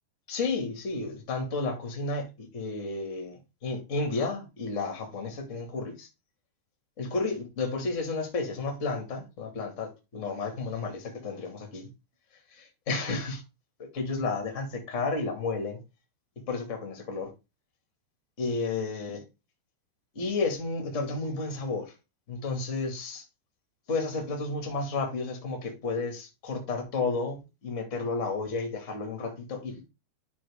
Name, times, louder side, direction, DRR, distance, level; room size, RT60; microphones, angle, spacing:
voice 1, 0.3-6.1 7.0-11.9 12.5-13.4 13.9-15.8 16.5-17.3 18.4-19.2 20.1-21.9 22.3-23.2 23.9-29.9, left 3 dB, 30° left, 1.5 m, -32 dB
11.0 x 4.3 x 3.6 m
omnidirectional pair, 4.9 m